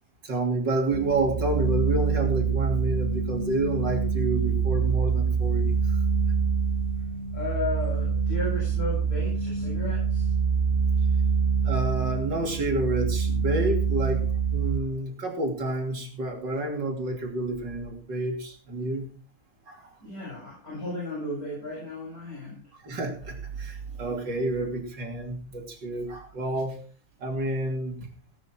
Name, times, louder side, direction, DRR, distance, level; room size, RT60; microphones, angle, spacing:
voice 1, 0.2-6.0 11.6-19.1 19.7-19.9 22.8-26.8 27.2-28.0, right 2 dB, 80° right, 3 dB, 3.6 m, -29 dB
sound 1, 0.9-14.8, right 6 dB, 30° right, 1.9 m, -25 dB
voice 2, 7.3-10.3 20.0-22.6, left 2 dB, 55° left, -6 dB, 8.4 m, -34 dB
18.5 x 9.5 x 4.6 m, 0.39 s
omnidirectional pair, 1.9 m